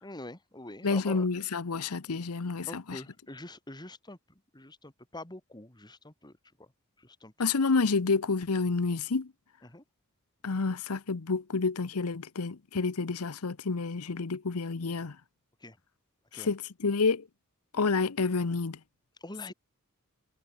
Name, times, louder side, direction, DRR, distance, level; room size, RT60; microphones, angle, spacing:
voice 1, 0.0-1.3 2.7-6.7 7.0-7.3 9.6-9.8 15.6-15.8 16.3-16.5 19.2-19.5, left 1 dB, 20° left, 2.8 m, -45 dB
voice 2, 0.8-3.0 7.4-9.3 10.4-15.2 16.3-17.3 17.7-18.8, left 4 dB, 80° left, 0.8 m, -29 dB
head